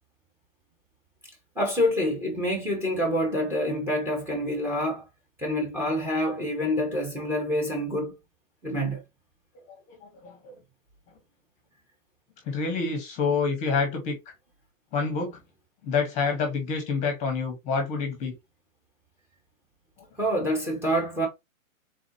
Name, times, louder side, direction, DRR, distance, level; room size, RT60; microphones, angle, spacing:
voice 1, 1.6-5.0 5.4-8.1 8.6-9.0 20.2-21.3, equal, 5° right, 1.1 m, -27 dB
voice 2, 9.5-10.6 12.5-14.3 14.9-15.4 15.8-18.3, left 5 dB, 15° left, 1.1 m, -28 dB
4.1 x 3.8 x 3.0 m
hypercardioid pair, 145°, 41 cm